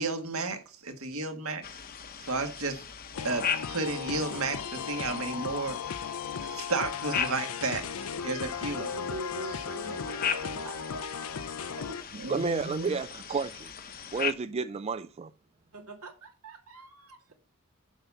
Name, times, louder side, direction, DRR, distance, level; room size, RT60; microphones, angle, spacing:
voice 1, 0.0-1.6 2.2-2.9 3.2-5.8 6.4-8.9 9.9-10.0 12.1-12.9, right 3 dB, 65° right, 1.7 m, -33 dB
sound 1, 1.6-14.3, left 7 dB, 40° left, 0.8 m, -38 dB
sound 2, 3.1-12.0, left 6 dB, 75° left, 0.6 m, -36 dB
voice 2, 8.8-12.0 15.7-17.3, right 2 dB, 85° right, 2.4 m, -44 dB
voice 3, 12.3-13.7 14.1-15.3, right 5 dB, 30° right, 0.3 m, -31 dB
7.2 x 5.6 x 7.0 m
head